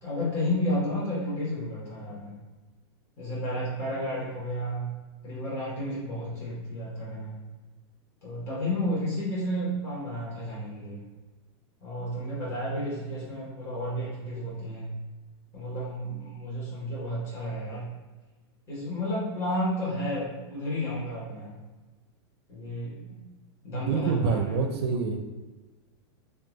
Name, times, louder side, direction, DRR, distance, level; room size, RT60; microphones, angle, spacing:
voice 1, 0.0-2.3 3.2-4.9 5.2-7.4 8.2-11.0 11.8-14.9 15.5-17.9 18.7-21.5 22.5-23.2 23.6-24.5, equal, 20° left, -9 dB, 1.3 m, -32 dB
voice 2, 23.7-25.2, right 4 dB, 70° right, 4 dB, 0.5 m, -26 dB
4.5 x 2.4 x 3.0 m, 1.3 s
supercardioid pair, 175°, 14 cm